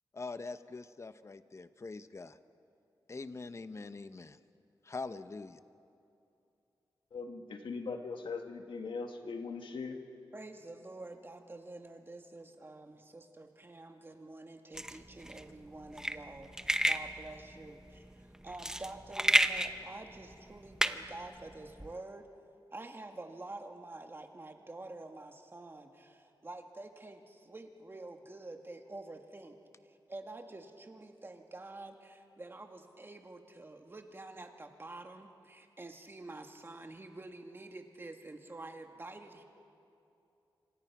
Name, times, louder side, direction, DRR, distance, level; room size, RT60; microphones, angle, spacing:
voice 1, 0.1-2.4 3.1-4.4 4.8-5.6, left 3 dB, 35° left, 12 dB, 0.9 m, -43 dB
voice 2, 7.1-10.0, left 4 dB, 80° left, 5 dB, 1.8 m, -40 dB
voice 3, 10.3-22.3 22.7-29.6 29.9-39.4, right 2 dB, 25° right, 4 dB, 2.0 m, -48 dB
sound 1, 14.7-21.9, right 1 dB, 5° right, 0.8 m, -32 dB
27.5 x 26.0 x 6.0 m, 2.7 s
wide cardioid pair, 125°, 8 cm